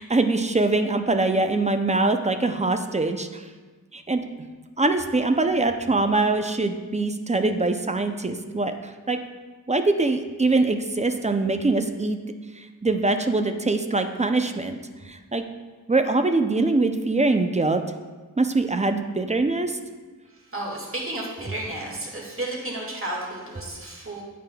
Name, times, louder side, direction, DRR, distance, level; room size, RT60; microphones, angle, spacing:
voice 1, 0.0-3.4 3.9-4.2 4.8-9.2 9.7-12.2 12.6-14.8 15.0-15.4 15.9-17.8 18.4-19.8, right 3 dB, 20° right, 7 dB, 0.4 m, -23 dB
voice 2, 20.3-24.2, right 1 dB, 40° right, -3 dB, 1.7 m, -32 dB
8.9 x 5.0 x 2.2 m, 1.4 s
cardioid pair, 45°, 34 cm